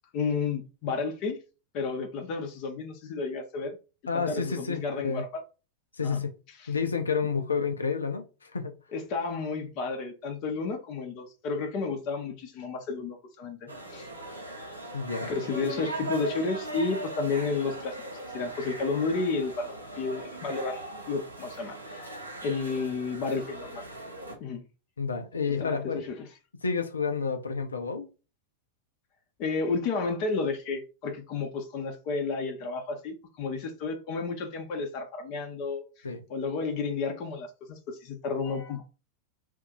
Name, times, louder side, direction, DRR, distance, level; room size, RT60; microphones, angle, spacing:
voice 1, 0.1-1.4 1.7-3.8 4.1-5.4 6.0-6.2 6.6-6.7 8.9-14.1 15.2-22.1 22.4-23.8 24.4-24.6 25.5-26.1 29.4-38.8, left 4 dB, 40° left, 0.7 m, -32 dB
voice 2, 4.1-5.2 6.0-6.4 6.7-8.8 14.9-15.3 25.0-26.0 26.6-28.1 36.0-36.2, left 5 dB, 75° left, 0.6 m, -30 dB
sound 1, 13.7-24.4, right 2 dB, 85° right, 0.9 m, -39 dB
2.7 x 2.5 x 3.7 m
figure-of-eight pair, 90°, 0 cm